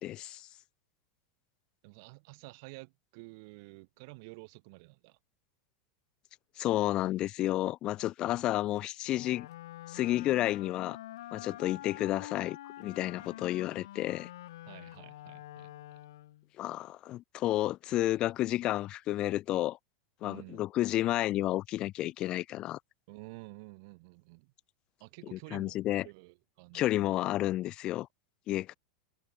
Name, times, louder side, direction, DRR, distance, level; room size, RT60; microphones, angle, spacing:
voice 1, 0.0-0.5 6.6-9.5 9.9-11.0 11.3-14.3 16.6-19.8 20.2-22.8 25.3-26.1 26.7-28.1 28.5-28.8, left 15 dB, 40° left, 0.5 m, -31 dB
voice 2, 1.8-5.2 14.7-15.7 20.2-20.7 23.1-24.5 25.0-27.1, right 28 dB, 60° right, 2.9 m, -50 dB
Wind instrument woodwind instrument, 9.1-16.5, left 14 dB, 80° left, 1.6 m, -46 dB
hypercardioid pair, 115°, 2 cm